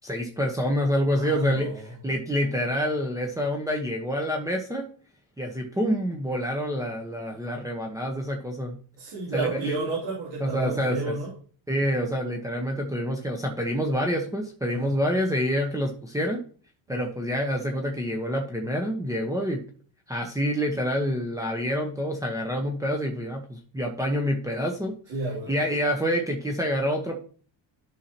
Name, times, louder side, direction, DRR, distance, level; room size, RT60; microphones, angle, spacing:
voice 1, 0.0-1.7 2.0-4.9 5.4-8.8 9.3-9.9 10.4-11.0 11.7-16.4 16.9-19.6 20.1-24.9 25.5-27.2, equal, 5° right, 0 dB, 1.0 m, -27 dB
voice 2, 1.1-1.9 9.0-11.3 14.7-14.9 16.9-17.1 25.1-25.5, right 3 dB, 80° right, -5 dB, 2.9 m, -31 dB
11.0 x 5.8 x 2.9 m, 0.44 s
cardioid pair, 105°, 45 cm